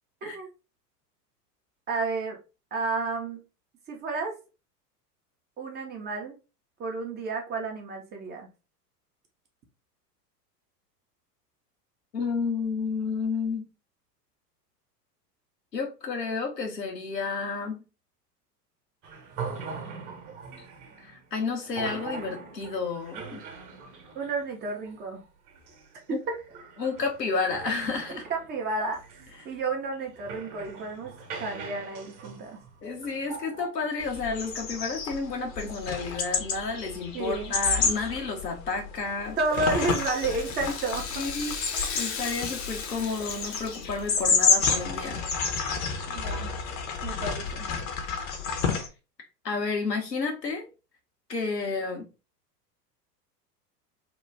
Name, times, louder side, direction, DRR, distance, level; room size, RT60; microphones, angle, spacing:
voice 1, 1.9-2.4 2.7-3.4 3.9-4.3 5.6-6.3 6.8-8.5 24.1-25.2 28.1-32.6 37.1-37.5 39.4-41.3 46.1-46.5 47.0-47.7, right 3 dB, 20° right, 0.6 m, -31 dB
voice 2, 12.1-13.7 15.7-17.8 21.0-23.4 26.1-26.2 26.8-28.2 32.8-39.4 41.2-41.6 41.9-45.2 49.4-50.7 51.3-52.0, left 4 dB, 85° left, 1.1 m, -31 dB
sound 1, 19.0-33.7, right 5 dB, 40° right, 1.0 m, -42 dB
sound 2, 34.0-48.9, left 5 dB, 60° left, 0.9 m, -30 dB
Rattle (instrument), 39.4-44.7 45.0-45.1 45.9-46.0, left 5 dB, 30° left, 0.6 m, -37 dB
2.9 x 2.3 x 3.3 m
figure-of-eight pair, 90°, 48 cm